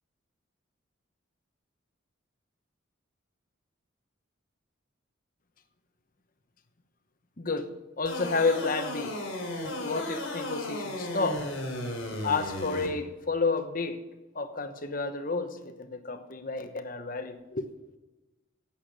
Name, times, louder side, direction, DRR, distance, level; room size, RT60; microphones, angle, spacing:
voice 1, 7.4-9.2 9.8-11.5 12.2-14.0 14.3-17.7, left 4 dB, 40° left, 9 dB, 1.0 m, -31 dB
sound 1, 8.1-12.9, left 1 dB, 85° left, 3.6 m, -35 dB
11.5 x 8.5 x 7.4 m, 1.1 s
head